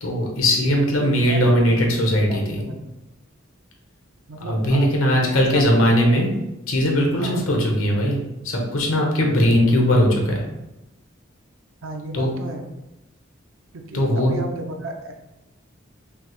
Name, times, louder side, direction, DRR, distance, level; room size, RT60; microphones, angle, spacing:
voice 1, 0.0-2.6 4.5-6.3 6.7-8.2 8.4-10.4 12.1-12.3 13.9-14.4, equal, 85° left, 0 dB, 0.9 m, -19 dB
voice 2, 0.6-3.0 4.3-4.9 5.2-6.0 7.1-7.4 11.8-12.7 13.7-15.1, right 2 dB, 75° right, 3 dB, 0.6 m, -34 dB
5.2 x 2.0 x 3.0 m, 0.94 s
head